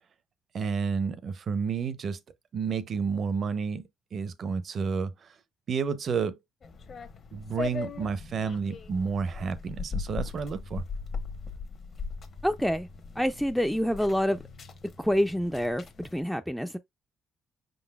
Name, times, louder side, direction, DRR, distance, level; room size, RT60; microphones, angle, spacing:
voice 1, 0.5-2.2 2.5-3.8 4.1-5.3 5.7-6.4 7.3-10.8, right 5 dB, 55° right, 0.6 m, -30 dB
sound 1, 6.6-16.2, left 5 dB, 50° left, 0.9 m, -39 dB
voice 2, 12.4-12.9 13.2-14.4 15.0-16.8, equal, ahead, 0.3 m, -27 dB
5.2 x 3.9 x 2.3 m
cardioid pair, 90°, 0 cm